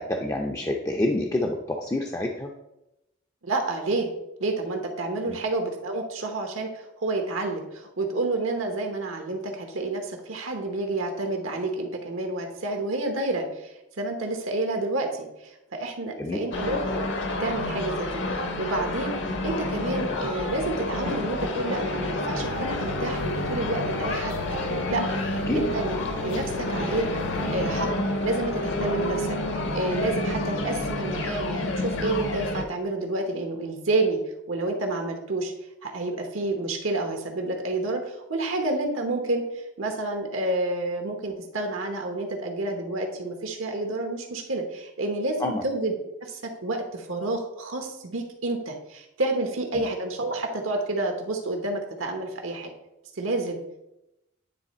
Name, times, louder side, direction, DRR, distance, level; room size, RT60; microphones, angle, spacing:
voice 1, 0.0-2.5 5.3-5.4 16.2-16.4 25.5-25.6 45.4-45.6 49.7-49.8, left 1 dB, 15° left, 1 dB, 0.4 m, -27 dB
voice 2, 3.4-4.1 4.4-16.8 17.4-19.1 19.4-24.4 24.9-25.9 26.2-27.1 27.5-34.2 34.5-35.5 35.8-45.9 46.2-52.7 53.2-53.6, right 2 dB, 80° right, 3 dB, 1.1 m, -29 dB
sound 1, 16.5-32.6, left 1 dB, 60° left, 0.9 m, -29 dB
sound 2, 22.4-27.9, left 6 dB, 85° left, 0.4 m, -41 dB
9.7 x 3.3 x 4.2 m, 0.89 s
head